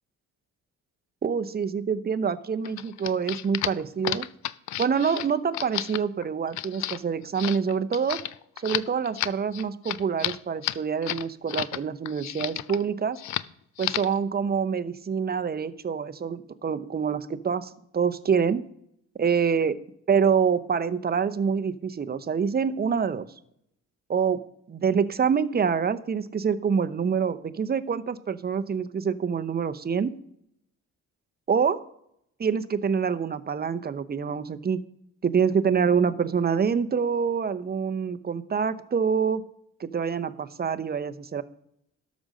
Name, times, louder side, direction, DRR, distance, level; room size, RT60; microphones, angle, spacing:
voice 1, 1.2-4.3 4.8-8.2 8.6-13.2 13.8-18.6 19.2-19.7 20.1-23.3 24.1-24.4 24.7-30.1 31.5-31.8 32.4-34.8 35.2-39.4 39.8-41.4, right 6 dB, 30° right, 11 dB, 0.7 m, -26 dB
sound 1, 2.6-11.8 12.0-12.8 13.1-13.5 13.8-14.2, left 14 dB, 70° left, 0.5 m, -32 dB
12.5 x 5.1 x 6.5 m, 0.75 s
cardioid pair, 90°, 30 cm